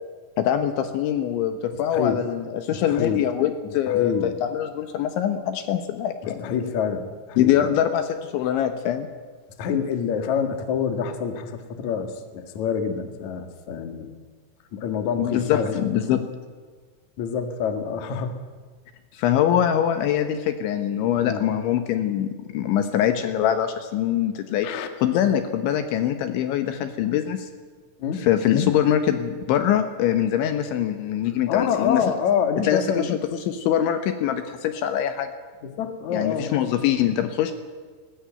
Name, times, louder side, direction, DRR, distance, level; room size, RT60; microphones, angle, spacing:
voice 1, 0.4-6.5 7.4-9.1 15.2-16.3 19.1-27.5 28.2-32.0 32.6-35.3 36.1-37.5, left 10 dB, 75° left, 8 dB, 3.3 m, -23 dB
voice 2, 1.9-2.3 2.7-3.2 3.9-4.3 6.2-7.7 9.6-14.1 14.7-15.8 17.2-18.3 21.2-21.4 24.6-24.9 28.0-28.3 31.5-33.1 35.6-36.6, left 7 dB, 50° left, 6 dB, 2.3 m, -27 dB
20.0 x 19.5 x 9.1 m, 1.5 s
omnidirectional pair, 6.0 m